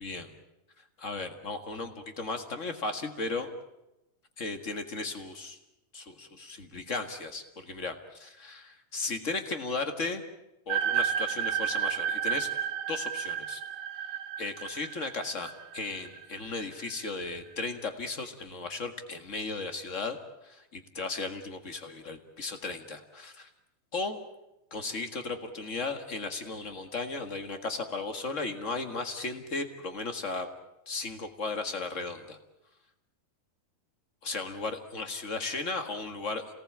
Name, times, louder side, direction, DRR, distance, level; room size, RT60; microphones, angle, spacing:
voice 1, 0.0-0.3 1.0-3.5 4.4-5.6 5.9-10.2 10.7-12.5 12.9-13.6 14.4-20.2 20.4-23.5 23.9-24.2 24.7-30.5 30.9-32.4 34.2-36.4, left 3 dB, 40° left, 7 dB, 1.1 m, -35 dB
sound 1, 10.7-16.9, right 9 dB, 75° right, 2.8 m, -32 dB
28.5 x 18.5 x 8.6 m, 0.91 s
omnidirectional pair, 4.1 m